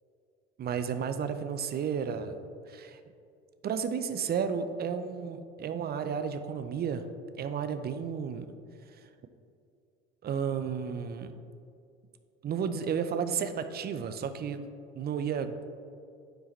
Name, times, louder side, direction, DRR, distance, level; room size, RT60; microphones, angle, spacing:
voice 1, 0.6-2.4 2.7-3.0 3.6-7.1 7.4-8.6 10.2-11.3 12.4-14.7 14.9-15.7, right 7 dB, 30° right, 10 dB, 0.5 m, -32 dB
10.0 x 4.7 x 3.2 m, 2.5 s
hypercardioid pair, 75°, 33 cm